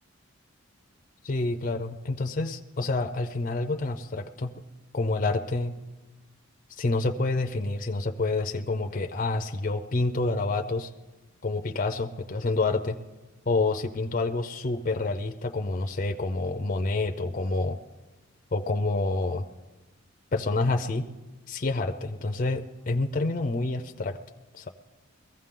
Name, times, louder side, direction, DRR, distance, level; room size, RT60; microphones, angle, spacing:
voice 1, 1.2-4.5 4.9-5.8 6.8-10.9 11.4-13.0 13.5-17.8 18.5-19.4 20.3-21.1 21.5-24.2 24.5-24.7, left 3 dB, 35° left, 5 dB, 0.5 m, -28 dB
22.0 x 15.0 x 3.7 m, 1.2 s
head